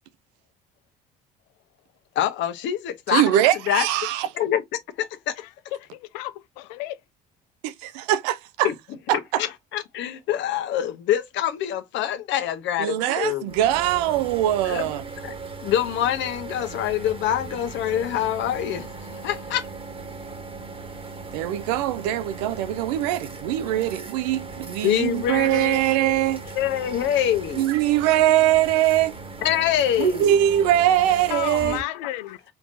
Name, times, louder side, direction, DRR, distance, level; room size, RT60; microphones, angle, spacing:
voice 1, 2.1-3.3 3.7-3.9 4.4-4.6 5.0-5.4 8.6-8.7 9.4-13.6 14.6-14.9 15.2-15.3 15.6-18.9 19.2-19.7 24.8-26.2 26.5-27.7 29.4-30.4, left 10 dB, 65° left, 1.0 m, -25 dB
voice 2, 3.1-4.3 7.6-8.7 9.1-9.4 12.8-15.0 21.3-26.4 27.5-29.1 30.0-31.8, right 12 dB, 85° right, 0.6 m, -22 dB
voice 3, 5.7-7.0 31.3-32.4, left 15 dB, 85° left, 0.5 m, -32 dB
sound 1, 13.5-31.8, right 3 dB, 30° right, 1.3 m, -38 dB
4.6 x 3.7 x 2.6 m
supercardioid pair, 70°, 20 cm